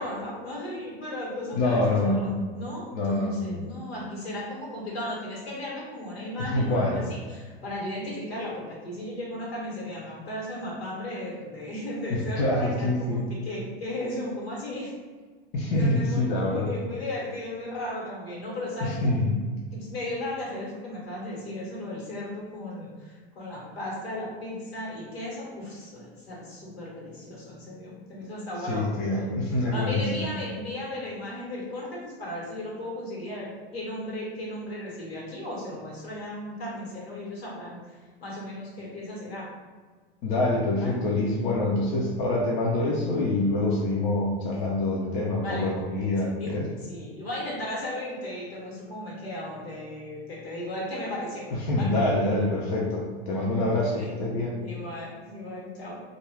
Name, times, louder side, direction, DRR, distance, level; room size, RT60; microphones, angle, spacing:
voice 1, 0.0-14.9 15.7-19.1 19.7-29.3 29.7-39.5 40.8-40.9 45.4-45.7 46.4-46.5 46.8-51.4 51.8-51.9 53.9-54.1 54.6-56.0, left 1 dB, 80° left, -5 dB, 1.3 m, -35 dB
voice 2, 1.5-2.3 2.9-3.4 6.4-7.0 12.4-13.3 15.5-16.7 18.8-19.4 28.7-30.3 40.2-46.7 51.5-54.5, left 2 dB, 55° left, -3 dB, 0.6 m, -25 dB
2.4 x 2.2 x 3.2 m, 1.4 s
hypercardioid pair, 90°, 30 cm